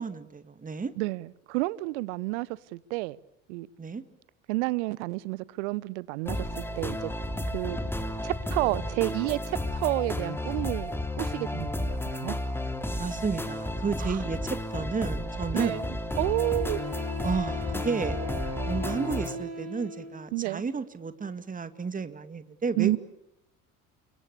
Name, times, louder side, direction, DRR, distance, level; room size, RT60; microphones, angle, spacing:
voice 1, 0.0-0.9 3.8-4.0 13.0-14.4 14.7-15.8 17.2-18.2 18.6-23.0, right 5 dB, 20° right, 2.2 m, -32 dB
voice 2, 1.0-3.2 3.5-3.7 4.5-6.4 6.8-7.1 7.5-7.8 8.2-12.4 14.0-14.2 15.5-15.8 16.2-16.8 20.3-20.6 22.8-23.0, right 22 dB, 65° right, 1.0 m, -30 dB
sound 1, 6.3-19.4, left 1 dB, 5° left, 3.2 m, -32 dB
Wind instrument woodwind instrument, 16.1-20.2, left 1 dB, 40° right, 7.2 m, -38 dB
29.0 x 23.5 x 8.6 m
figure-of-eight pair, 65°, 38 cm